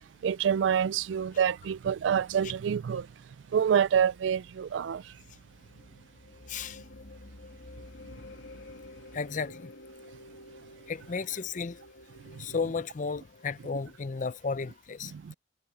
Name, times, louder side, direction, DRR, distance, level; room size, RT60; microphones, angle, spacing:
voice 1, 0.2-3.1 3.5-5.0 12.3-12.5 15.0-15.3, right 8 dB, 75° right, 0.3 m, -27 dB
sound 1, 3.9-14.1, left 1 dB, 80° left, 1.9 m, -51 dB
voice 2, 6.5-6.8 9.1-9.7 10.9-11.8 12.4-15.1, left 5 dB, 45° left, 0.5 m, -33 dB
head